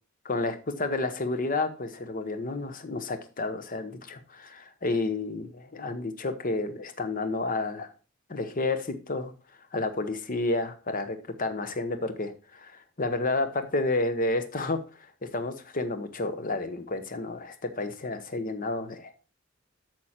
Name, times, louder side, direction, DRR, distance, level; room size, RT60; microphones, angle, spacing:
voice 1, 0.2-7.9 8.3-9.3 9.7-14.8 15.3-19.1, left 2 dB, 45° left, 9 dB, 0.9 m, -30 dB
8.7 x 6.3 x 4.2 m, 0.33 s
head